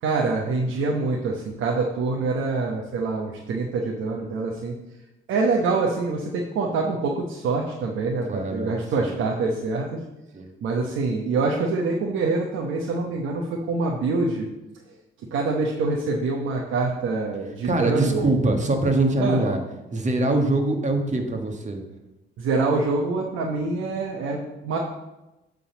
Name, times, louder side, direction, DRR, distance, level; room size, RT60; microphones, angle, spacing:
voice 1, 0.0-4.7 5.3-10.0 10.6-14.5 15.3-18.3 19.2-19.4 22.4-24.8, right 3 dB, 85° right, 0 dB, 1.0 m, -25 dB
voice 2, 8.3-9.1 10.3-10.5 17.6-19.6 19.9-21.8, right 2 dB, 35° right, 4 dB, 1.5 m, -23 dB
8.6 x 3.9 x 7.0 m, 1.0 s
cardioid pair, 90°, 20 cm